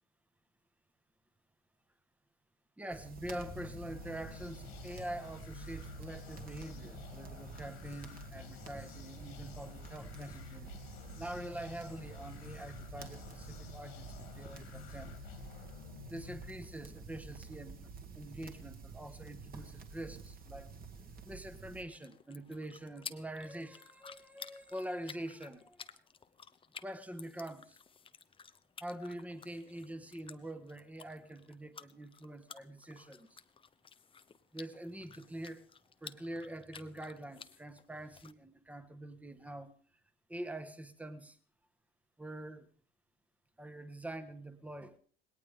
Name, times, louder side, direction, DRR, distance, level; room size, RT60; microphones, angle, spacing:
voice 1, 2.8-10.7 11.2-15.1 16.1-17.9 18.1-20.7 21.2-26.0 26.8-27.8 28.8-33.4 34.5-35.7 36.0-39.7 40.3-41.4 42.2-42.7 43.6-45.0, right 1 dB, 5° right, 10 dB, 1.4 m, -45 dB
sound 1, 2.9-21.8, right 5 dB, 30° right, 2.1 m, -49 dB
sound 2, 3.1-16.9, left 11 dB, 80° left, 2.8 m, -52 dB
sound 3, 21.7-38.3, left 6 dB, 20° left, 0.8 m, -54 dB
19.5 x 18.0 x 3.6 m, 0.42 s
hypercardioid pair, 100°, 30 cm